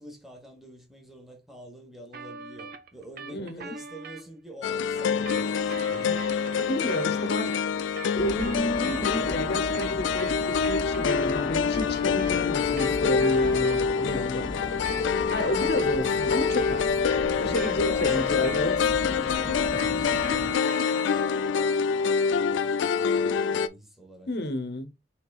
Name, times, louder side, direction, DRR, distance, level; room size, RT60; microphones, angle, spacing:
voice 1, 0.0-7.6 12.1-12.4 14.2-14.7 15.4-15.8 17.3-24.3, right 1 dB, ahead, 1.1 m, -46 dB
sound 1, 2.1-4.2 5.0-9.3 9.6-13.8 14.6-18.9 19.2-21.3, right 5 dB, 55° right, 0.6 m, -43 dB
voice 2, 3.3-3.8 6.6-7.5 8.1-14.5 15.3-16.9 17.4-19.2 24.3-24.9, left 1 dB, 60° left, 0.8 m, -31 dB
sound 2, 4.6-23.7, left 6 dB, 85° left, 0.4 m, -26 dB
sound 3, 8.2-20.6, left 2 dB, 25° left, 0.5 m, -37 dB
5.9 x 3.5 x 2.3 m
head